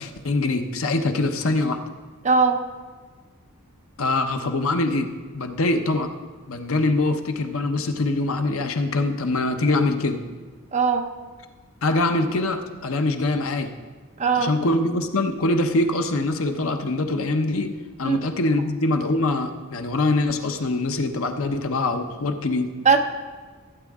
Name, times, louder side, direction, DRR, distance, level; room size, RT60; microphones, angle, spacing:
voice 1, 0.0-1.8 4.0-6.1 6.5-10.2 11.8-13.7 14.3-22.7, left 2 dB, 70° left, 6 dB, 0.9 m, -23 dB
voice 2, 2.2-2.6 10.7-11.0 14.2-14.5 18.0-18.2 22.8-23.0, right 5 dB, 35° right, 5 dB, 0.8 m, -19 dB
16.0 x 8.8 x 3.6 m, 1.4 s
head